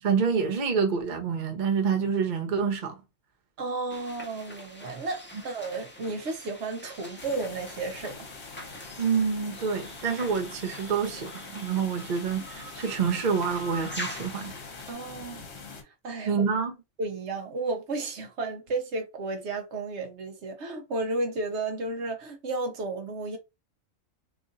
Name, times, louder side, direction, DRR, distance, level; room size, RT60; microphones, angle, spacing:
voice 1, 0.0-3.0 9.0-14.5 16.3-16.7, right 6 dB, 45° right, 0.7 m, -27 dB
voice 2, 3.6-8.3 14.9-15.4 15.8-16.4 17.0-23.4, right 2 dB, 65° right, 1.0 m, -33 dB
sound 1, 3.9-14.9, equal, 10° left, 0.5 m, -43 dB
sound 2, 7.2-15.8, left 4 dB, 60° left, 1.2 m, -44 dB
3.0 x 2.5 x 3.8 m
omnidirectional pair, 1.3 m